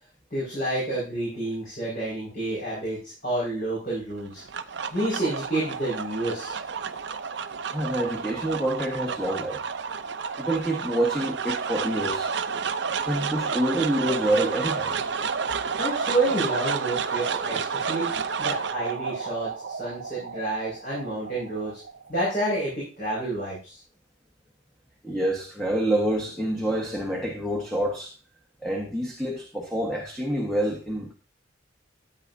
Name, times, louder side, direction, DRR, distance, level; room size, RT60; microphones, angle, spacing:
voice 1, 0.3-4.4 4.9-6.6 15.8-18.1 18.4-21.8 22.1-23.8, right 2 dB, 45° left, 5.2 m, -29 dB
sound 1, 4.2-22.5, right 6 dB, 60° right, 0.6 m, -31 dB
voice 2, 7.7-9.6 10.4-12.3 12.9-14.9 25.0-28.1 28.6-31.1, right 1 dB, 5° left, 1.3 m, -27 dB
13.0 x 8.5 x 2.7 m
head